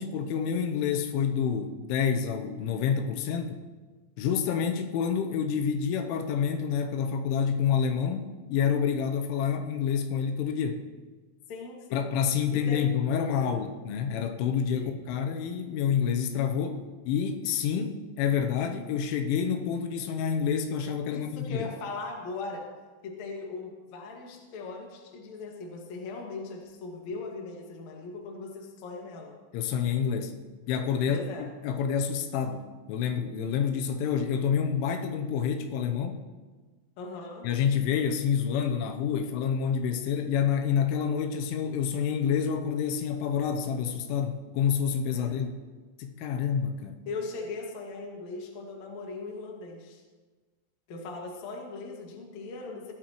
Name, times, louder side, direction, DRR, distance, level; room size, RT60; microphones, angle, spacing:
voice 1, 0.0-3.7 4.2-10.8 11.9-16.8 17.1-21.7 29.5-30.3 30.7-31.2 31.6-36.2 37.4-45.6 46.0-47.0, left 7 dB, 85° left, 5 dB, 3.3 m, -28 dB
voice 2, 11.5-12.0 12.5-12.8 13.3-13.6 14.7-14.9 21.1-22.7 23.0-29.3 31.1-31.4 37.0-37.5 45.1-45.4 47.1-50.0 50.9-52.9, left 3 dB, 50° left, 0 dB, 2.4 m, -39 dB
19.5 x 13.0 x 3.1 m, 1.3 s
omnidirectional pair, 5.5 m